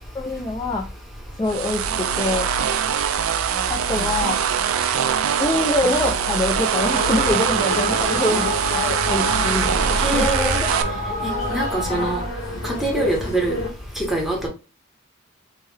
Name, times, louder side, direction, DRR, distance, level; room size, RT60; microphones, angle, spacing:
voice 1, 0.1-0.8 1.4-2.5 3.7-4.4 5.4-10.7 11.1-11.5, left 2 dB, 20° left, 0 dB, 0.3 m, -25 dB
sound 1, 1.5-10.8, right 7 dB, 80° right, 0.3 m, -22 dB
sound 2, 6.5-12.3, left 1 dB, 40° left, 0.9 m, -30 dB
sound 3, 6.9-13.7, left 2 dB, 75° left, 1.0 m, -31 dB
voice 2, 10.0-10.6 11.2-12.2 12.6-13.6 14.0-14.5, right 1 dB, ahead, -1 dB, 0.8 m, -24 dB
3.5 x 2.1 x 3.2 m, 0.30 s
head